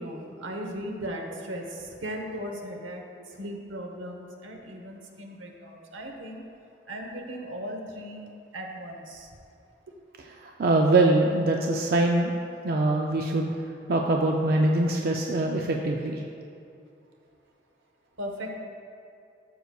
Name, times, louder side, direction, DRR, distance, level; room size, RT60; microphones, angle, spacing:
voice 1, 0.0-3.0 3.4-6.4 6.9-8.2 8.5-9.3 18.2-18.6, equal, 85° right, 2 dB, 1.0 m, -37 dB
voice 2, 10.4-12.3 12.6-13.5 13.9-16.2, right 2 dB, 50° right, 1 dB, 0.4 m, -23 dB
12.5 x 6.6 x 2.3 m, 2.5 s
head